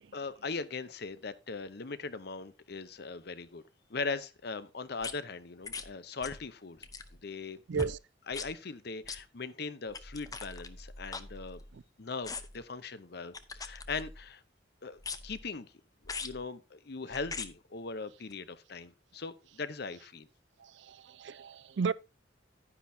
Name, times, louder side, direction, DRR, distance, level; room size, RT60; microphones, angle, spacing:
voice 1, 0.1-3.6 3.9-6.9 7.2-7.6 8.3-11.6 12.0-14.4 14.8-15.7 16.0-20.3, left 4 dB, 55° left, 0.8 m, -40 dB
sound 1, 5.0-5.1 5.6-5.9 6.2-6.5 6.8-7.2 7.7-8.0 8.3-8.5 9.0-9.2 9.9-11.8 12.2-12.6 13.3-14.3 15.0-15.4 16.0-16.4 17.1-17.5 18.3-18.4, left 4 dB, 20° left, 0.6 m, -41 dB
voice 2, 7.7-8.0 11.7-11.8 20.6-21.9, right 5 dB, 70° right, 0.4 m, -34 dB
10.5 x 9.9 x 2.8 m
head